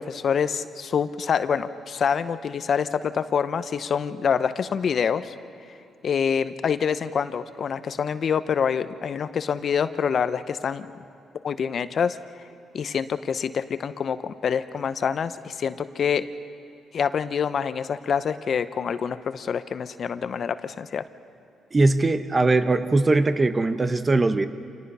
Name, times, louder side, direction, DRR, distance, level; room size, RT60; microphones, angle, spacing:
voice 1, 0.0-5.3 6.0-10.9 11.4-12.2 12.7-16.3 16.9-21.0, left 7 dB, 55° left, 12 dB, 0.8 m, -26 dB
voice 2, 21.7-24.5, right 2 dB, 25° right, 11 dB, 1.0 m, -20 dB
27.0 x 19.0 x 5.5 m, 2.8 s
cardioid pair, 90°, 0 cm